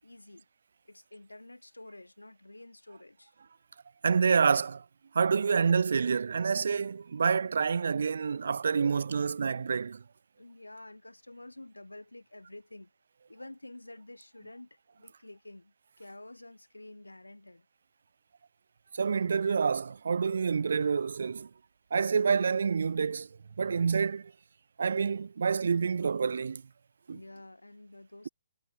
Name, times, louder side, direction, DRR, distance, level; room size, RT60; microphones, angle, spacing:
voice 1, 0.0-0.5 0.8-3.3 10.4-12.9 13.3-17.7 27.1-28.3, left 2 dB, 90° left, 4.1 m, -49 dB
voice 2, 4.0-4.8 5.1-10.0 18.9-21.5 21.9-23.3 23.6-24.3 24.8-26.6 27.1-27.2, right 5 dB, 65° right, 1.3 m, -27 dB
figure-of-eight pair, 135°, 0 cm